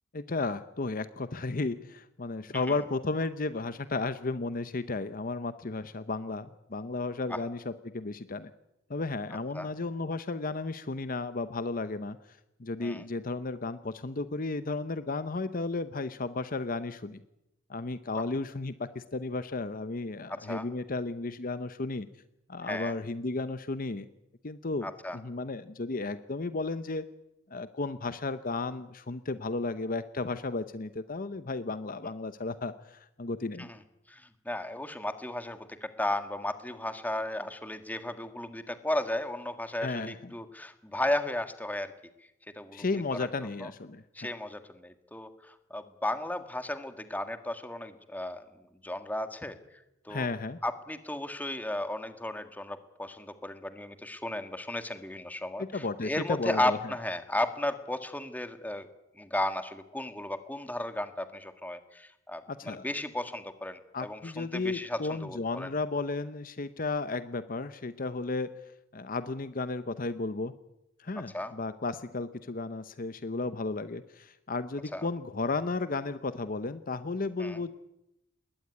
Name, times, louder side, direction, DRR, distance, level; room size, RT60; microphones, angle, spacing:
voice 1, 0.1-7.6 7.9-8.5 8.9-17.2 17.7-22.1 22.5-24.1 24.4-27.1 27.5-33.7 39.8-40.3 42.7-44.0 50.1-50.6 55.6-56.8 62.5-62.9 63.9-68.5 68.9-70.5 71.0-77.7, left 3 dB, 45° left, 12 dB, 0.8 m, -34 dB
voice 2, 20.3-20.6 22.6-22.9 24.8-25.2 33.6-33.8 34.1-41.9 42.5-42.8 43.2-43.3 43.6-43.7 44.1-48.5 48.8-49.6 50.0-50.3 50.6-58.9 59.2-65.7 71.3-71.5 74.9-75.1 77.4-77.6, left 1 dB, 10° left, 9 dB, 1.7 m, -34 dB
21.0 x 18.0 x 9.8 m, 0.88 s
head